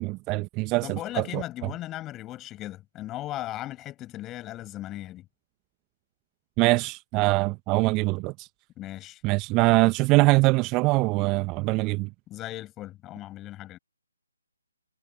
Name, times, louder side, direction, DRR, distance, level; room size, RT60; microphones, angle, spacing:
voice 1, 0.0-1.7 6.6-8.5 9.2-12.1, right 23 dB, 20° right, 1.0 m, -23 dB
voice 2, 0.8-5.3 8.8-9.2 12.3-13.8, left 15 dB, 15° left, 6.7 m, -37 dB
figure-of-eight pair, 140°, 0 cm